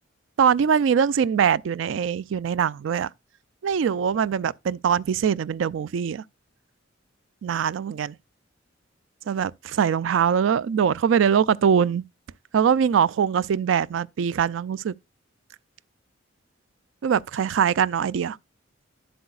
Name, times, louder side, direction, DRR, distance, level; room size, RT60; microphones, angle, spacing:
voice 1, 0.4-3.1 3.6-6.2 7.4-8.2 9.3-12.0 12.5-14.9 17.0-18.4, right 7 dB, 70° right, 0.3 m, -22 dB
10.5 x 7.8 x 2.4 m
head